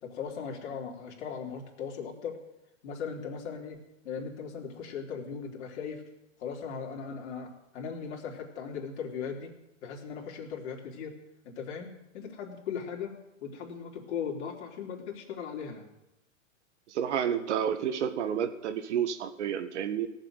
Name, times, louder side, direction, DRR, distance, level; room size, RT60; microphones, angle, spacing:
voice 1, 0.0-2.4 2.8-6.0 6.4-9.5 9.8-11.2 11.4-13.1 13.4-15.9, left 6 dB, 60° left, -1 dB, 3.9 m, -38 dB
voice 2, 16.9-20.1, right 8 dB, 60° right, 9 dB, 1.7 m, -30 dB
18.0 x 7.5 x 9.1 m, 0.91 s
hypercardioid pair, 135°, 39 cm